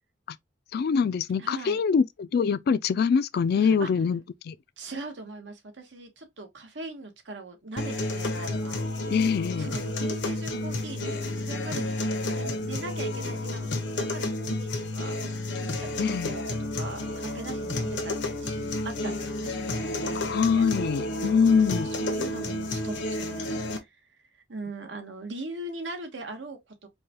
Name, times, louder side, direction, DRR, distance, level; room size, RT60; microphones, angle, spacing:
voice 1, 0.7-4.2 4.5-4.6 9.1-9.7 16.0-16.3 20.2-21.9, left 6 dB, 60° left, 0.3 m, -24 dB
voice 2, 1.4-1.8 3.5-3.9 4.8-8.8 9.6-18.1 18.4-20.6 21.1-21.4 21.8-26.9, right 2 dB, 90° right, 1.0 m, -41 dB
sound 1, 7.8-23.8, left 1 dB, 90° left, 1.0 m, -31 dB
4.7 x 2.3 x 2.8 m
head